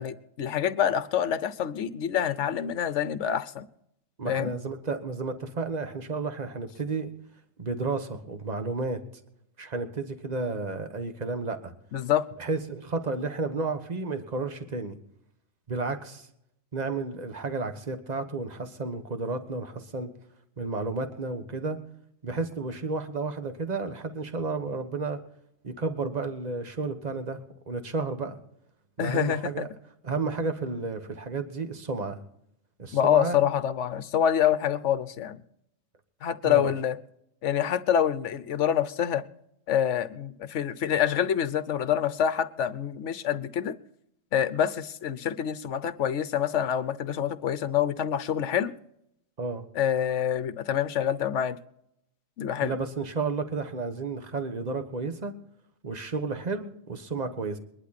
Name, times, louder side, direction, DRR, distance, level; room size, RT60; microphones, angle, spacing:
voice 1, 0.0-3.6 4.3-4.5 11.9-12.2 29.0-29.7 32.9-35.4 36.2-37.0 37.4-39.2 39.7-43.8 44.3-48.7 49.7-51.6 52.4-52.7, left 9 dB, 65° left, 14 dB, 1.1 m, -26 dB
voice 2, 4.2-7.1 7.6-9.0 9.6-11.7 12.4-15.0 15.7-16.3 16.7-20.1 20.6-21.8 22.2-25.2 25.6-27.4 27.7-28.4 29.0-29.7 30.0-32.2 32.8-33.4 36.4-36.7 49.4-49.7 52.6-55.3 55.8-57.6, right 3 dB, 35° right, 7 dB, 1.4 m, -32 dB
22.0 x 11.5 x 4.2 m, 0.76 s
omnidirectional pair, 1.4 m